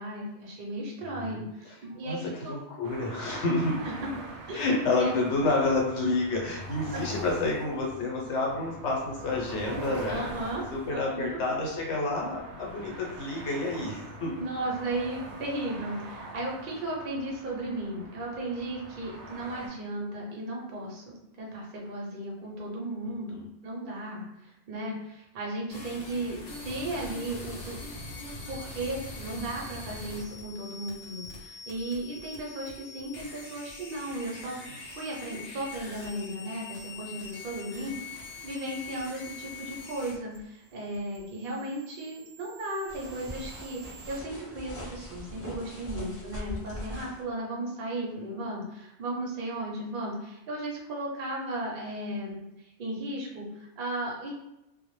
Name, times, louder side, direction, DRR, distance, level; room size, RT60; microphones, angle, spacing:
voice 1, 0.0-2.6 3.8-4.1 4.5-4.6 5.0-5.2 6.9-7.0 10.1-10.6 10.9-11.4 14.4-27.8 28.5-34.7 35.0-54.3, right 1 dB, 55° right, -2 dB, 0.7 m, -35 dB
voice 2, 1.0-1.4 2.0-3.8 4.5-10.3 10.7-14.4 23.3-23.4, left 2 dB, 90° left, -2 dB, 1.0 m, -29 dB
sound 1, 2.8-19.7, right 2 dB, 90° right, 0.9 m, -43 dB
sound 2, 25.7-44.2, left 2 dB, 65° left, 0.8 m, -44 dB
sound 3, 42.9-47.2, equal, 15° left, 0.5 m, -41 dB
2.1 x 2.0 x 3.0 m, 0.89 s
omnidirectional pair, 1.2 m